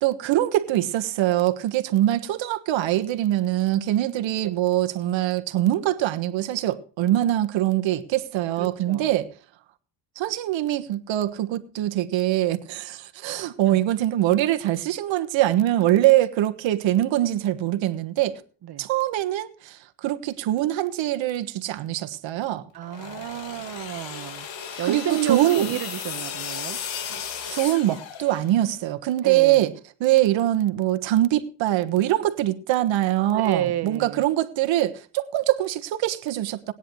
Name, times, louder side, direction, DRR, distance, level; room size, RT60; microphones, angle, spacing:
voice 1, 0.0-9.3 10.2-18.4 18.8-22.6 24.8-25.7 27.1-27.2 27.5-29.7 30.0-36.7, right 14 dB, 75° right, 1.4 m, -23 dB
voice 2, 8.6-9.1 13.6-13.8 18.6-18.8 22.7-24.5 24.8-26.8 29.2-29.7 33.3-34.2, right 11 dB, 55° right, 1.2 m, -30 dB
sound 1, 22.8-28.7, left 8 dB, 75° left, 2.2 m, -35 dB
19.5 x 10.0 x 3.1 m
cardioid pair, 120°, 45 cm